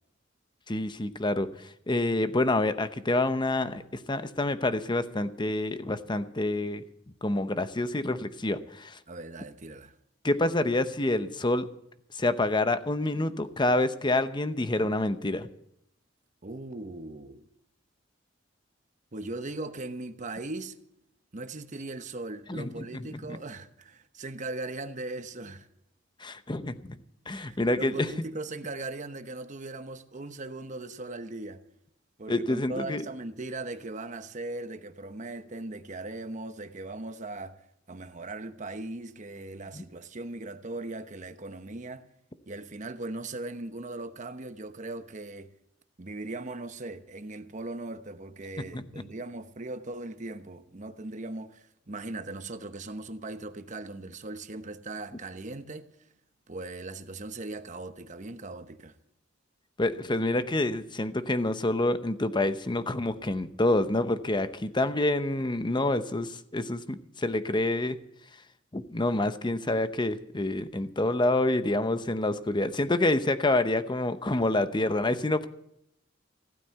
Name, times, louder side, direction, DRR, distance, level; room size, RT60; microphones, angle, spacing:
voice 1, 0.7-3.8 4.1-6.8 7.2-9.0 10.2-11.7 12.1-15.5 22.5-23.2 26.2-27.0 27.3-28.1 32.3-33.0 39.7-39.8 48.7-48.8 59.8-68.0 68.7-75.5, left 2 dB, 25° left, 0.8 m, -27 dB
voice 2, 9.1-9.9 16.4-17.5 19.1-20.8 21.3-25.7 27.3-31.6 32.2-37.6 37.9-42.0 42.5-45.5 46.0-55.9 56.5-58.9, right 2 dB, 40° right, 1.0 m, -39 dB
15.5 x 9.3 x 8.0 m
head